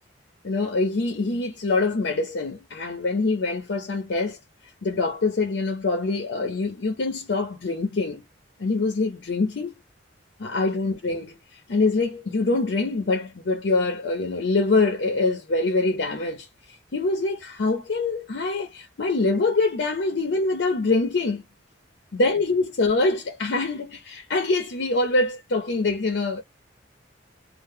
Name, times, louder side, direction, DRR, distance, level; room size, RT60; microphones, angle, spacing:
voice 1, 0.4-4.4 4.8-8.2 8.6-9.8 10.4-16.5 16.9-21.4 22.1-26.4, left 3 dB, 65° left, 0.5 m, -24 dB
2.0 x 2.0 x 3.3 m
head